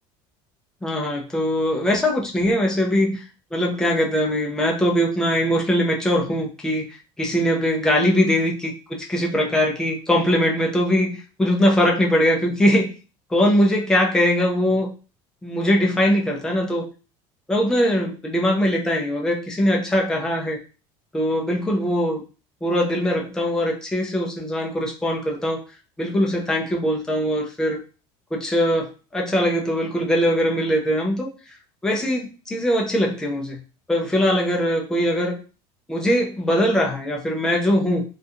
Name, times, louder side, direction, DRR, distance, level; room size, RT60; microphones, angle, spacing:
voice 1, 0.8-3.2 3.5-6.9 7.2-12.9 13.3-14.9 15.4-16.9 17.5-20.6 21.1-22.2 22.6-25.6 26.0-27.8 28.3-31.3 31.8-33.6 33.9-35.4 35.9-38.0, equal, 5° left, -1 dB, 0.3 m, -21 dB
2.7 x 2.2 x 2.4 m, 0.35 s
cardioid pair, 175°, 13 cm